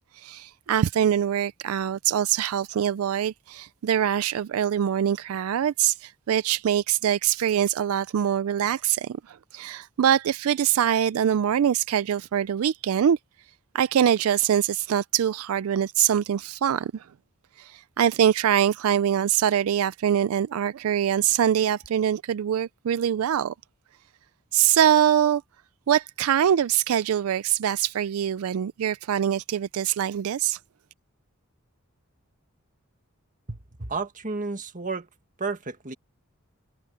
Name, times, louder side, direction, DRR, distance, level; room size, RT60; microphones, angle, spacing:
voice 1, 0.1-13.2 13.7-17.1 17.6-23.5 24.5-25.4 25.9-30.6, right 9 dB, 80° right, 0.4 m, -23 dB
voice 2, 33.5-35.1 35.4-35.9, right 4 dB, 40° right, 1.8 m, -32 dB
head